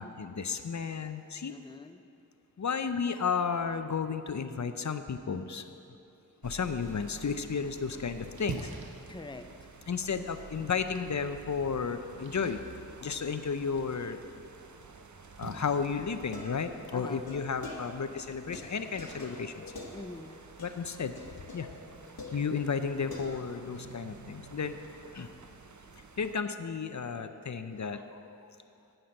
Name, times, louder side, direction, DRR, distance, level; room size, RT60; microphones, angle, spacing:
voice 1, 0.0-1.5 2.6-5.6 6.4-8.7 9.9-12.6 13.0-14.2 15.4-19.6 20.6-21.1 21.5-21.7 22.3-24.8 25.1-25.3 26.2-28.4, left 5 dB, 55° left, 9 dB, 0.6 m, -33 dB
voice 2, 1.5-2.0 9.1-9.7 16.9-17.8 19.9-20.4, left 2 dB, 15° left, 8 dB, 0.6 m, -45 dB
sound 1, 6.4-26.4, right 4 dB, 55° right, 0.8 m, -51 dB
Splash splatter, 7.7-20.4, right 4 dB, 85° right, 0.9 m, -50 dB
sound 2, 16.1-18.2 18.5-20.3 20.6-20.9 21.2-22.8 23.1-23.7, left 2 dB, 80° left, 1.2 m, -46 dB
10.0 x 8.0 x 5.4 m, 2.8 s
cardioid pair, 40°, 35 cm